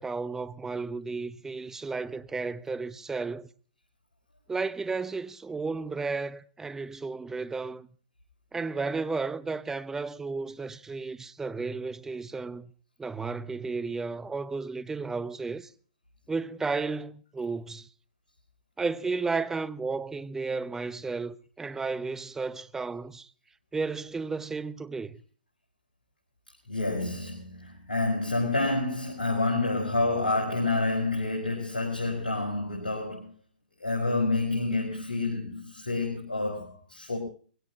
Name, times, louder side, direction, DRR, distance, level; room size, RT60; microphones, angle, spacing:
voice 1, 0.0-3.5 4.5-7.9 8.5-12.7 13.0-15.7 16.3-17.9 18.8-23.3 23.7-25.2, right 4 dB, 10° right, 0.9 m, -33 dB
voice 2, 26.7-33.3 33.8-37.2, left 2 dB, 85° left, 5.9 m, -28 dB
22.0 x 17.0 x 3.0 m
figure-of-eight pair, 115°, 5 cm